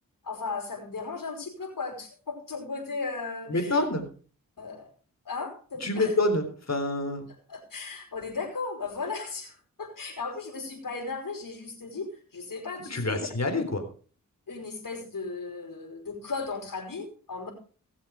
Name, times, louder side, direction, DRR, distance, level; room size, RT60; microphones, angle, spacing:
voice 1, 0.2-3.8 4.6-4.9 5.2-6.1 7.5-13.3 14.5-17.5, left 4 dB, 70° left, 1 dB, 5.0 m, -36 dB
voice 2, 3.5-4.0 5.8-7.3 12.9-13.8, left 2 dB, 50° left, 6 dB, 3.8 m, -27 dB
18.0 x 7.2 x 5.0 m, 0.41 s
cardioid pair, 45°, 34 cm